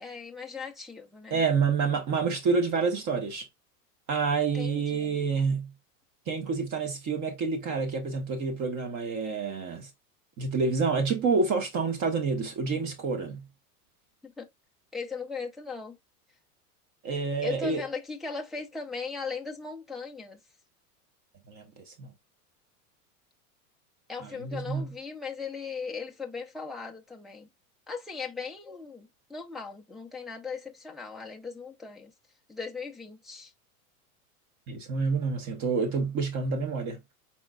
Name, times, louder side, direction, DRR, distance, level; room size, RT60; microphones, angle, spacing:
voice 1, 0.0-1.4 4.5-5.2 14.2-14.5 14.9-16.0 17.4-20.4 24.1-27.5 27.9-32.1 32.5-33.5, left 4 dB, ahead, 0.5 m, -38 dB
voice 2, 1.3-3.5 4.1-5.7 6.3-9.9 10.4-13.5 17.0-17.8 21.5-22.1 24.2-24.9 34.7-37.0, right 4 dB, 40° right, 1.4 m, -28 dB
4.4 x 4.1 x 2.3 m
hypercardioid pair, 115°, 45 cm